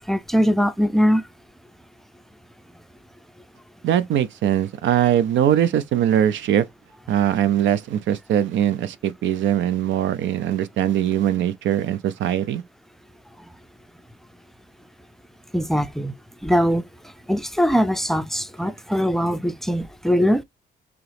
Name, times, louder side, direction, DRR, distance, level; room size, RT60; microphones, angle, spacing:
voice 1, 0.1-1.2 15.5-16.1 16.4-16.8 17.3-20.4, equal, ahead, 0.4 m, -21 dB
voice 2, 3.8-6.7 7.1-12.6, right 10 dB, 70° right, 0.5 m, -21 dB
3.6 x 2.9 x 3.3 m
cardioid pair, 90°, 20 cm